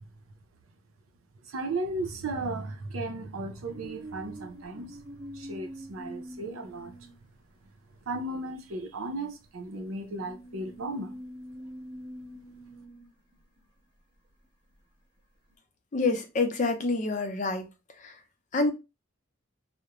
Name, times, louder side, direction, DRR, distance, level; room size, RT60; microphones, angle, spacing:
voice 1, 1.4-5.0 5.3-6.9 8.1-11.2, right 2 dB, 90° right, 0.6 m, -35 dB
sound 1, 3.7-7.4 8.6-8.7 9.3-13.8 15.5-15.6, equal, 25° right, 0.9 m, -45 dB
voice 2, 15.9-17.7 18.0-18.1 18.5-18.7, left 3 dB, 35° left, 0.5 m, -27 dB
2.5 x 2.1 x 2.9 m
head